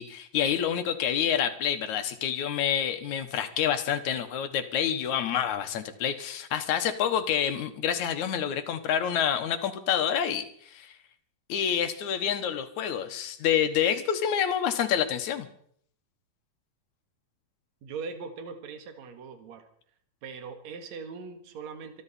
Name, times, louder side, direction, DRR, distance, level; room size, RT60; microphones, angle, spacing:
voice 1, 0.0-10.9 11.5-15.5, left 9 dB, 65° left, 7 dB, 2.4 m, -28 dB
voice 2, 17.8-19.7 20.2-22.0, right 5 dB, 60° right, 6 dB, 2.8 m, -40 dB
25.5 x 11.0 x 4.2 m, 0.62 s
omnidirectional pair, 3.9 m